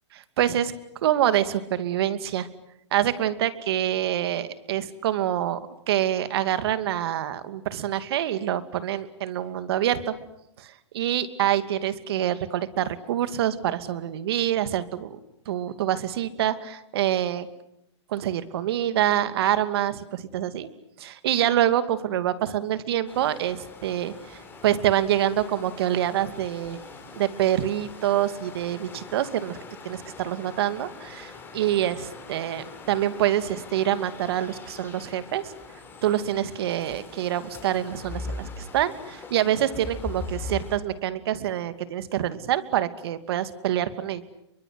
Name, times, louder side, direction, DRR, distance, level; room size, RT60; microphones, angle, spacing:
voice 1, 0.4-0.7 1.0-2.5 2.9-5.6 5.9-10.1 10.6-15.2 15.5-17.5 18.1-20.7 21.0-26.8 27.2-29.6 29.8-35.5 36.0-44.2, right 11 dB, 55° right, 11 dB, 2.6 m, -26 dB
sound 1, 23.1-40.8, left 3 dB, 15° left, 5.2 m, -41 dB
29.0 x 24.5 x 8.1 m, 0.78 s
hypercardioid pair, 135°, 15 cm